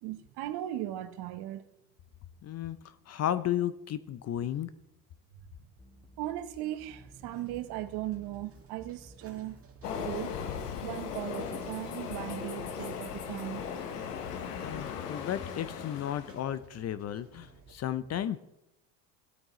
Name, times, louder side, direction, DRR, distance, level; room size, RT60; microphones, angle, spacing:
voice 1, 0.0-1.6 6.2-9.6 10.0-10.3 10.8-13.6, right 14 dB, 55° right, 1.0 m, -38 dB
voice 2, 2.4-4.7 14.6-18.4, left 11 dB, 35° left, 0.6 m, -34 dB
sound 1, 5.8-10.8, left 1 dB, 10° left, 1.6 m, -57 dB
sound 2, 6.9-17.7, right 5 dB, 30° right, 1.8 m, -56 dB
Train, 9.8-16.5, left 7 dB, 90° left, 1.1 m, -38 dB
17.0 x 8.8 x 3.1 m
hypercardioid pair, 90°, 46 cm